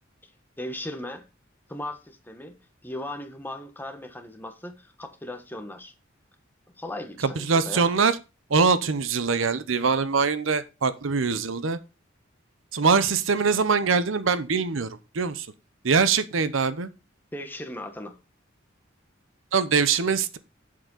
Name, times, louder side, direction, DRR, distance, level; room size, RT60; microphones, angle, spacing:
voice 1, 0.6-1.3 1.7-2.6 2.8-5.9 6.8-7.9 17.3-18.2, left 1 dB, 10° left, 1.3 m, -37 dB
voice 2, 7.2-8.2 8.5-11.8 12.7-14.9 15.1-15.5 15.8-16.9 19.5-20.4, right 5 dB, 75° right, 0.7 m, -23 dB
7.7 x 7.7 x 3.9 m
head